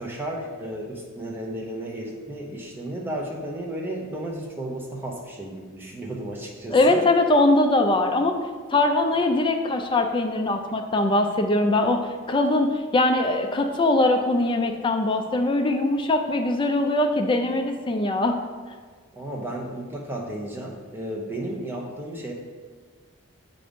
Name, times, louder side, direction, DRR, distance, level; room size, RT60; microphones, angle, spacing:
voice 1, 0.0-7.1 19.1-22.3, right 1 dB, 10° right, -2 dB, 0.7 m, -33 dB
voice 2, 6.7-8.4 8.7-18.4, left 2 dB, 20° left, 4 dB, 0.4 m, -22 dB
7.4 x 2.5 x 5.1 m, 1.5 s
head